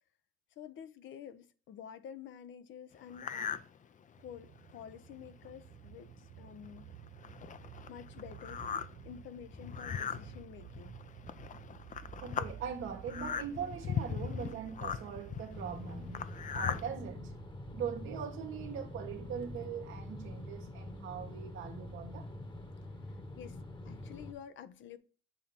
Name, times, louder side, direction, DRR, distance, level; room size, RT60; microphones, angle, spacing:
voice 1, 0.6-3.6 4.2-6.9 7.9-8.6 9.0-11.0 23.1-23.6 23.9-25.0, left 9 dB, 75° left, 0.7 m, -49 dB
sound 1, 3.1-3.7 4.2-4.3 4.9-5.0 5.2-5.5 6.2-6.3 6.7-16.9, left 7 dB, 40° left, 0.5 m, -39 dB
sound 2, 4.2-21.2, right 10 dB, 55° right, 0.5 m, -53 dB
voice 2, 12.2-16.3 16.5-17.3 17.7-22.3, right 7 dB, 85° right, 1.3 m, -41 dB
sound 3, 15.5-24.3, left 1 dB, 25° left, 1.1 m, -45 dB
7.2 x 2.9 x 5.5 m
cardioid pair, 90°, 20 cm